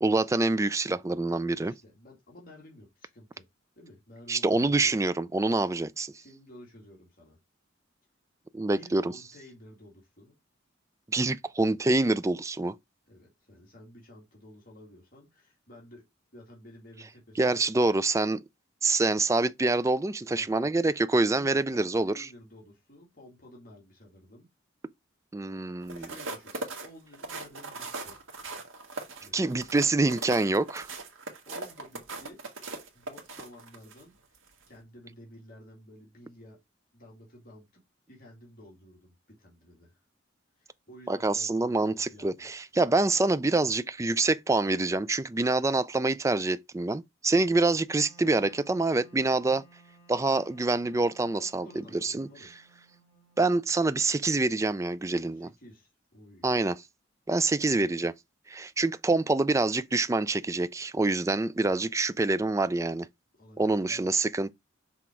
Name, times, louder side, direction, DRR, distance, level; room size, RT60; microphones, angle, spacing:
voice 1, 0.0-1.7 4.3-6.1 8.5-9.1 11.1-12.7 17.4-18.4 18.8-22.3 25.3-26.1 29.3-30.9 41.1-49.6 50.1-51.7 52.0-52.3 53.4-55.5 56.4-56.7 57.3-58.1 58.5-63.1 63.6-64.5, right 2 dB, 15° right, 0.3 m, -26 dB
voice 2, 1.6-3.5 3.8-5.0 6.1-7.4 8.7-10.4 13.1-16.0 16.3-17.7 20.2-20.7 21.2-24.5 25.9-26.6 26.8-28.2 29.2-29.6 31.4-34.4 34.7-36.6 36.9-37.8 38.1-40.0 40.6-42.5 51.4-52.7 55.4-56.5 57.7-57.9 63.3-64.2, left 1 dB, 45° left, 2.3 m, -52 dB
sound 1, 25.8-34.0 34.5-34.7, right 3 dB, 80° right, 1.6 m, -39 dB
Wind instrument woodwind instrument, 47.9-54.8, right 3 dB, 15° left, 3.5 m, -59 dB
6.0 x 3.6 x 4.5 m
head